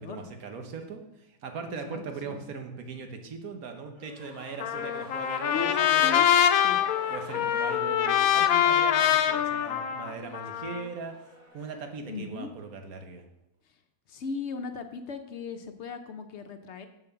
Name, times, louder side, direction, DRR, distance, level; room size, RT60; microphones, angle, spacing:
voice 1, 0.0-6.3 7.1-11.2 11.5-13.2, right 4 dB, 85° right, 5 dB, 1.5 m, -39 dB
voice 2, 1.9-2.4 5.5-6.3 6.6-6.8 7.4-7.5 12.1-12.5 14.1-16.9, left 5 dB, 60° left, 8 dB, 0.8 m, -37 dB
sound 1, 3.9-12.4, left 1 dB, 55° right, 2.5 m, -48 dB
Trumpet, 4.6-10.9, left 10 dB, 80° left, 1.1 m, -24 dB
6.9 x 4.5 x 6.8 m, 0.89 s
omnidirectional pair, 1.5 m